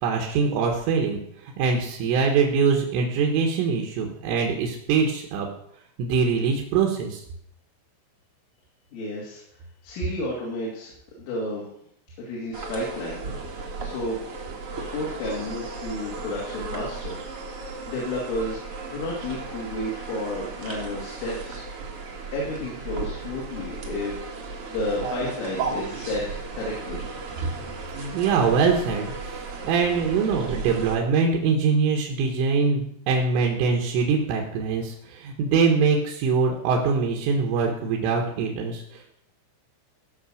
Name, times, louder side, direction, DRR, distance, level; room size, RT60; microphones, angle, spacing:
voice 1, 0.0-5.5 6.0-7.2 28.1-39.2, right 5 dB, 85° right, 0 dB, 4.0 m, -23 dB
voice 2, 8.9-9.4 9.8-10.9 11.2-11.7 12.2-13.2 13.8-14.2 14.9-17.2 17.5-18.6 18.9-21.6 22.3-27.0, left 1 dB, 75° left, -4 dB, 5.0 m, -31 dB
sound 1, 12.5-30.9, right 4 dB, 70° right, 1.3 m, -35 dB
16.5 x 6.1 x 6.4 m, 0.69 s
omnidirectional pair, 5.6 m